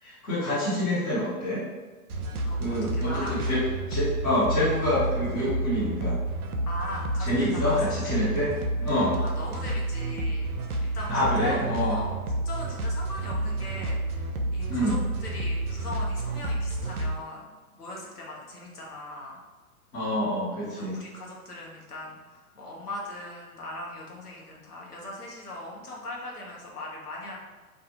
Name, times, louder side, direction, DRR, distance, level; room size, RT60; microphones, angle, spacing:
voice 1, 0.0-1.6 2.6-3.6 3.9-6.2 7.2-8.5 8.8-9.2 11.1-12.0 14.7-15.0 19.9-21.0, left 1 dB, 20° left, -12 dB, 1.0 m, -27 dB
sound 1, 2.1-17.2, right 1 dB, 75° right, 0.6 m, -30 dB
voice 2, 2.9-3.4 6.7-7.8 8.0-8.2 9.1-12.1 12.4-17.5 17.7-19.4 20.7-27.4, left 2 dB, 85° left, -3 dB, 0.9 m, -39 dB
2.4 x 2.4 x 2.8 m, 1.3 s
figure-of-eight pair, 115°, 45 cm